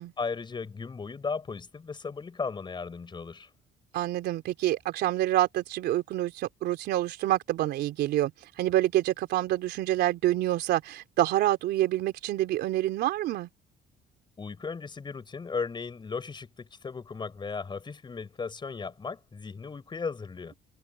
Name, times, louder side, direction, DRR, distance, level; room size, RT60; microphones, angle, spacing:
voice 1, 0.2-3.5 14.4-20.5, left 5 dB, 25° left, 5.1 m, -36 dB
voice 2, 3.9-8.3 8.6-13.5, right 14 dB, 75° right, 3.8 m, -27 dB
cardioid pair, 110°, 17 cm